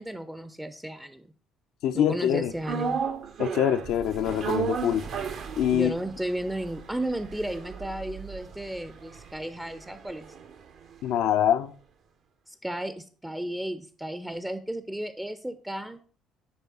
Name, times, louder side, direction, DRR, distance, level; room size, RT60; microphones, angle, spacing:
voice 1, 0.0-1.3 1.9-3.0 5.7-10.3 12.5-16.0, right 1 dB, 5° right, 0.5 m, -34 dB
voice 2, 1.8-2.5 3.4-5.1 5.6-5.9 11.0-11.7, left 10 dB, 55° left, 0.4 m, -24 dB
sound 1, 2.6-10.9 11.2-11.3, right 6 dB, 50° right, 0.6 m, -35 dB
9.5 x 3.4 x 4.0 m
figure-of-eight pair, 50°, 0 cm